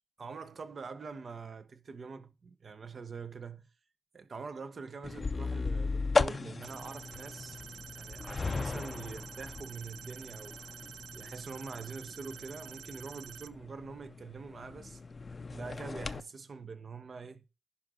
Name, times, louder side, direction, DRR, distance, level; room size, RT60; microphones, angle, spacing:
voice 1, 0.2-3.7 4.1-10.6 11.1-15.0 15.5-17.4, right 4 dB, 50° right, 1.0 m, -44 dB
sound 1, 5.0-16.2, left 4 dB, 35° left, 0.5 m, -37 dB
sound 2, 6.6-13.5, right 9 dB, 85° right, 0.4 m, -49 dB
10.5 x 5.0 x 3.7 m
cardioid pair, 75°, 0 cm